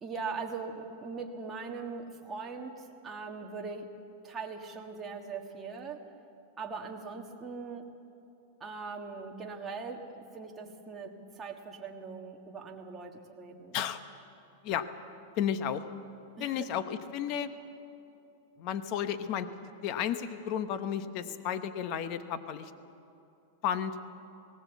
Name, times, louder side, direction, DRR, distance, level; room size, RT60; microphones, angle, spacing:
voice 1, 0.0-3.9 4.2-6.0 6.6-7.9 8.6-13.8 16.4-16.6, right 4 dB, 15° right, 0 dB, 1.6 m, -40 dB
voice 2, 15.4-15.8 16.4-17.5 18.6-19.5 19.8-22.7 23.6-23.9, left 9 dB, 35° left, 11 dB, 0.9 m, -32 dB
19.0 x 18.0 x 8.2 m, 2.7 s
supercardioid pair, 165°, 0 cm